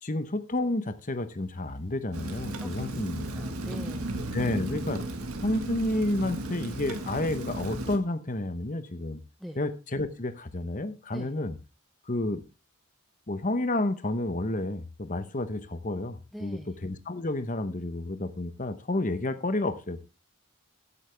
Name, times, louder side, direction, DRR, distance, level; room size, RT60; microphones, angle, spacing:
voice 1, 0.0-3.4 4.3-5.0 5.4-9.2 9.6-11.5 12.1-12.4 13.3-20.0, left 1 dB, 35° left, 10 dB, 1.0 m, -30 dB
Rain, 2.1-8.0, right 1 dB, 85° right, 1.8 m, -35 dB
voice 2, 2.6-3.0 3.3-4.2 9.4-9.6 11.1-11.3 16.3-16.7, equal, ahead, 7 dB, 0.5 m, -42 dB
14.5 x 8.3 x 3.5 m, 0.32 s
head